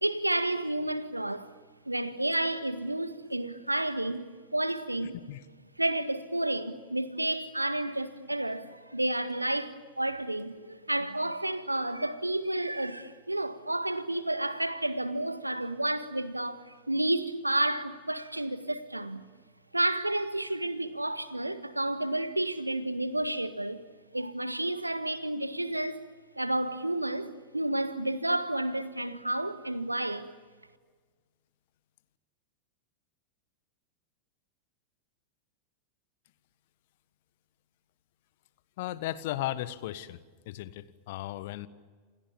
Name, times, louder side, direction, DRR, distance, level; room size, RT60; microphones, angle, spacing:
voice 1, 0.0-1.5 1.8-5.2 5.8-19.2 19.7-23.8 24.1-26.0 26.3-30.3, right 1 dB, 85° right, 1.6 m, -31 dB
voice 2, 38.8-41.7, left 14 dB, 50° left, 1.5 m, -36 dB
28.5 x 28.5 x 7.2 m
figure-of-eight pair, 90°, 0 cm